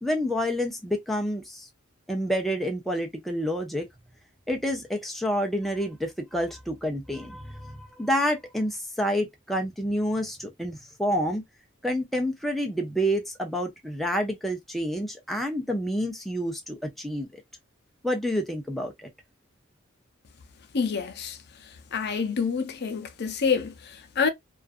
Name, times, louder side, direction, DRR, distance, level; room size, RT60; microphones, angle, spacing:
voice 1, 0.0-1.7 2.1-3.9 4.5-11.4 11.8-17.4 18.0-19.1, equal, ahead, 0.5 m, -28 dB
voice 2, 20.7-21.4 21.9-24.3, left 5 dB, 55° left, 0.5 m, -27 dB
2.4 x 2.4 x 2.4 m
head